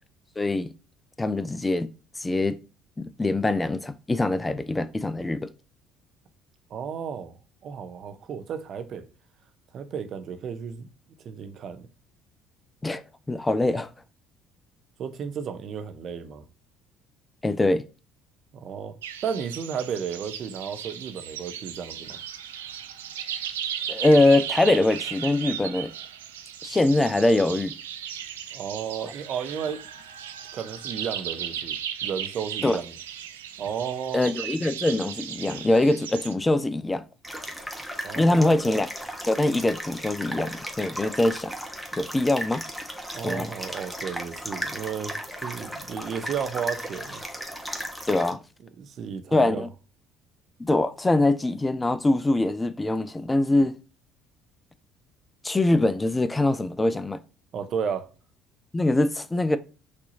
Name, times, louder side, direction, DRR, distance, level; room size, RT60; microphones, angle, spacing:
voice 1, 0.4-0.7 1.2-1.9 2.2-2.6 3.0-5.5 12.8-13.9 17.4-17.8 23.9-25.9 26.6-27.7 32.6-32.8 34.1-37.0 38.2-38.9 39.2-41.5 42.0-42.6 43.2-43.5 48.1-48.4 49.3-49.7 50.6-53.7 55.4-57.2 58.7-59.6, left 2 dB, 15° left, 0.4 m, -23 dB
voice 2, 6.7-7.4 7.6-9.1 9.7-10.9 11.2-11.9 15.0-16.4 18.5-22.2 28.5-29.8 30.5-33.0 33.6-34.3 38.0-38.6 43.1-47.2 48.6-49.7 57.5-58.1, right 7 dB, 50° right, 0.7 m, -33 dB
sound 1, 19.0-36.3, right 9 dB, 80° right, 0.4 m, -36 dB
sound 2, 37.2-48.3, equal, ahead, 1.1 m, -36 dB
6.1 x 2.8 x 2.7 m
figure-of-eight pair, 55°, 0 cm